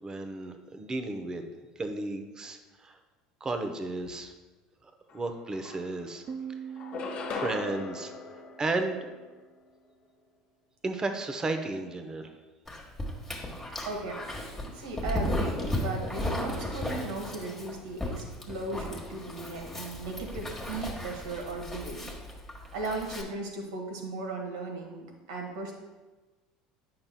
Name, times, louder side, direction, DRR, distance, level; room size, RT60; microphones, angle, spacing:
voice 1, 0.0-1.4 1.8-3.0 3.4-4.3 4.8-6.2 7.3-8.1 8.6-9.1 10.8-12.3, right 2 dB, 25° right, 6 dB, 0.7 m, -33 dB
sound 1, 5.1-5.2 5.5-6.3 6.8-9.4, left 5 dB, 45° left, 0.8 m, -39 dB
Piano, 6.3-9.7, right 7 dB, 40° right, 0.3 m, -44 dB
Dog, 12.7-23.2, left 1 dB, 10° left, 1.3 m, -35 dB
voice 2, 13.8-22.1 22.7-25.7, right 3 dB, 80° right, 1 dB, 1.3 m, -37 dB
8.7 x 5.6 x 2.2 m, 1.2 s
hypercardioid pair, 85°, 3 cm